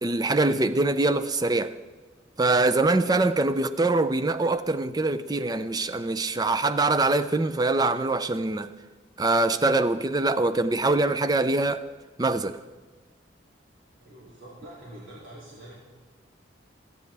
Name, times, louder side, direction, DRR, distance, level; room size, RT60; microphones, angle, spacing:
voice 1, 0.0-1.7 2.4-8.7 9.2-11.8 12.2-12.6, right 2 dB, 20° right, 0.4 m, -23 dB
voice 2, 14.0-15.7, right 1 dB, 80° right, 2.7 m, -45 dB
26.5 x 9.3 x 3.4 m
head